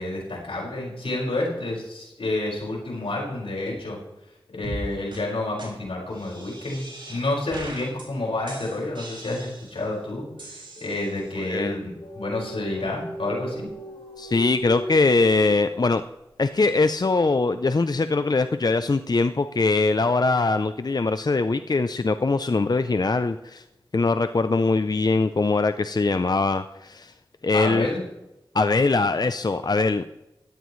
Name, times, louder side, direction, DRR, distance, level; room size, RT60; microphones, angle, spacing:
voice 1, 0.0-4.0 4.5-13.7 27.5-28.0, left 2 dB, 90° left, -3 dB, 5.3 m, -29 dB
sound 1, 4.6-4.8 5.1-5.2 5.6-5.7 6.1-7.2 7.5-8.1 8.5-9.9 10.4-11.3, right 1 dB, 60° right, 5.8 m, -39 dB
voice 2, 11.4-11.8 14.2-16.0 16.4-23.6 23.9-27.1 27.4-27.9 28.5-30.1, left 3 dB, 45° left, 11 dB, 0.6 m, -22 dB
sound 2, 12.0-16.0, equal, 75° left, 3.8 m, -37 dB
16.5 x 13.5 x 3.2 m, 0.92 s
wide cardioid pair, 50°, 9 cm